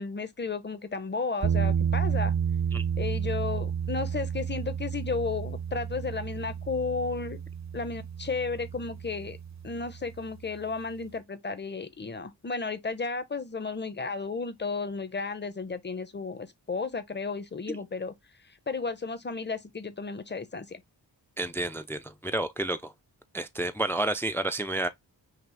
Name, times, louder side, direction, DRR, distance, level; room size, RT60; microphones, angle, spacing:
voice 1, 0.0-2.3 3.0-7.4 7.7-9.4 9.6-18.1 18.7-20.8, left 4 dB, 25° left, 0.8 m, -33 dB
sound 1, 1.4-10.4, right 7 dB, 40° right, 0.6 m, -31 dB
voice 2, 21.4-22.9 23.3-24.9, right 2 dB, 5° left, 0.4 m, -30 dB
6.0 x 2.4 x 3.2 m
wide cardioid pair, 95°, 42 cm